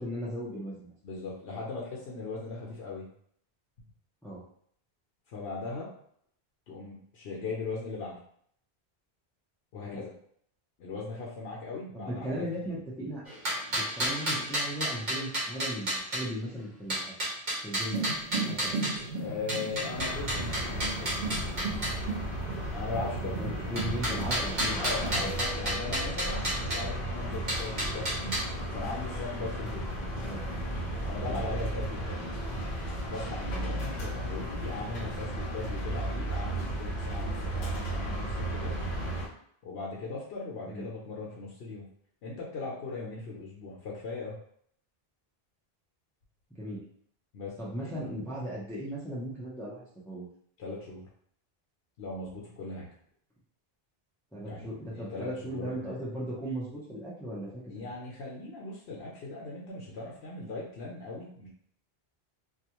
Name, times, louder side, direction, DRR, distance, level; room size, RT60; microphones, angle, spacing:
voice 1, 0.0-0.9 4.2-4.4 9.8-10.0 11.9-13.4 13.7-17.1 17.6-18.0 18.3-18.7 23.2-25.3 30.2-30.4 31.2-31.4 40.7-40.9 46.5-46.8 47.6-50.3 54.3-57.6, right 1 dB, 5° left, -7 dB, 0.5 m, -37 dB
voice 2, 1.0-3.1 5.3-5.9 6.7-8.2 9.7-10.1 10.8-12.8 19.2-21.8 22.7-24.0 24.8-28.3 28.7-29.8 31.1-32.2 33.1-38.8 39.6-41.9 42.2-44.4 47.3-48.1 50.6-51.1 52.0-52.9 54.4-56.0 57.7-61.5, left 3 dB, 85° left, -4 dB, 0.9 m, -39 dB
sound 1, 13.3-16.2 16.9-19.0 19.5-22.0 23.8-26.8 27.5-28.4, right 1 dB, 50° right, 1.1 m, -31 dB
sound 2, 17.8-25.5, right 3 dB, 85° right, 0.8 m, -37 dB
sound 3, 19.9-39.3, right 1 dB, 50° left, 0.7 m, -34 dB
2.4 x 2.2 x 2.9 m, 0.64 s
omnidirectional pair, 1.0 m